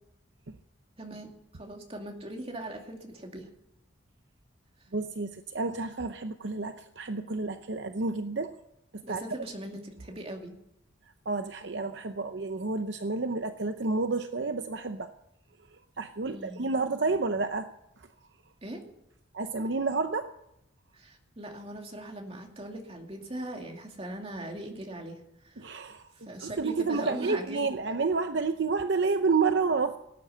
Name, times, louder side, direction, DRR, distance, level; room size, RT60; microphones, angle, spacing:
voice 1, 1.0-3.5 9.0-10.5 16.3-16.6 18.6-18.8 20.9-25.6 26.1-27.7, right 1 dB, 30° right, 2 dB, 2.5 m, -40 dB
voice 2, 4.9-8.5 8.9-9.2 11.3-15.1 16.0-17.7 19.3-20.3 25.6-26.0 26.4-30.0, right 4 dB, 65° right, 8 dB, 0.7 m, -30 dB
18.0 x 9.4 x 6.9 m, 0.82 s
head